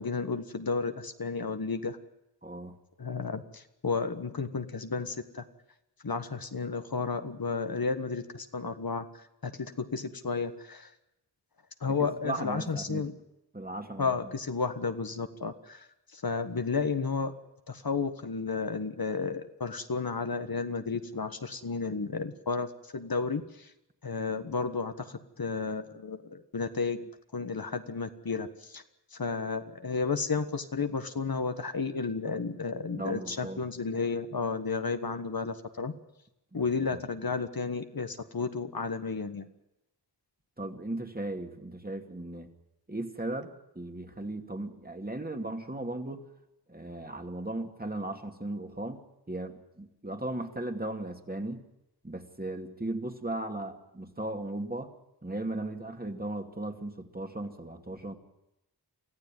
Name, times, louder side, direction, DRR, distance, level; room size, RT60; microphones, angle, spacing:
voice 1, 0.0-2.0 3.0-5.4 6.0-9.1 9.4-10.9 11.8-13.1 14.0-17.3 17.7-23.7 24.0-28.8 29.1-35.9 36.5-39.5, left 4 dB, 60° left, 8 dB, 1.5 m, -32 dB
voice 2, 2.4-2.8 11.8-13.1 13.5-14.1 32.9-33.6 36.5-37.0 40.6-42.5 42.9-46.3 46.7-49.0 49.3-51.6 52.0-54.9 55.2-58.1, right 2 dB, 20° right, 5 dB, 2.3 m, -37 dB
24.0 x 15.0 x 9.1 m, 0.90 s
wide cardioid pair, 70°, 41 cm